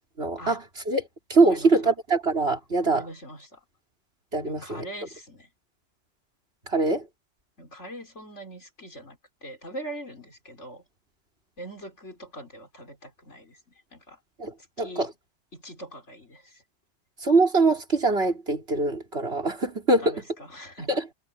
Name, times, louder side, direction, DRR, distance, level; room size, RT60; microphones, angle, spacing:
voice 1, 0.2-1.0 1.3-3.1 4.3-4.9 6.7-7.1 14.4-15.1 17.2-20.2 20.9-21.0, right 3 dB, 60° right, 4.5 m, -23 dB
voice 2, 2.8-3.6 4.5-5.5 7.6-10.8 11.6-14.2 14.8-15.1 15.5-16.6 20.0-20.9, right 1 dB, 80° left, 5.4 m, -42 dB
omnidirectional pair, 1.2 m